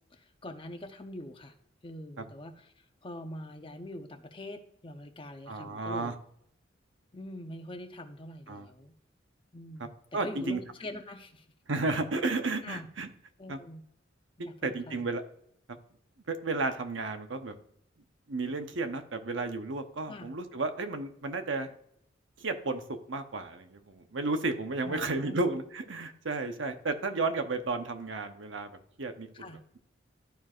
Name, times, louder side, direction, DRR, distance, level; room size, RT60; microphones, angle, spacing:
voice 1, 0.1-1.5 1.8-2.7 3.0-6.1 7.1-8.9 9.5-9.9 10.2-11.4 12.6-12.9 13.4-13.8 14.4-15.1 20.1-20.3 24.8-25.4 29.3-29.6, left 1 dB, 30° left, 5 dB, 0.9 m, -44 dB
voice 2, 5.5-6.1 8.5-8.7 10.1-10.6 11.7-13.1 13.5-13.6 14.6-15.2 15.7-15.8 16.3-17.5 18.3-21.7 22.4-22.8 23.1-29.8, right 3 dB, 80° right, 7 dB, 0.9 m, -33 dB
13.0 x 4.6 x 2.5 m, 0.71 s
head